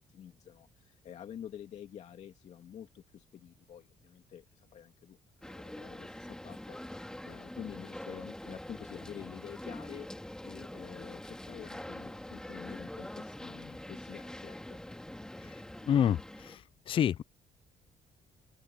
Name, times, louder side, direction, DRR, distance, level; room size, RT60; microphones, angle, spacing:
voice 1, 0.0-10.1 10.4-14.8, left 9 dB, 55° left, 2.4 m, -48 dB
sound 1, 5.4-16.6, left 1 dB, 5° left, 2.1 m, -44 dB
voice 2, 15.9-16.6 16.9-17.2, left 9 dB, 40° left, 0.4 m, -27 dB
open air
cardioid pair, 150°, 14 cm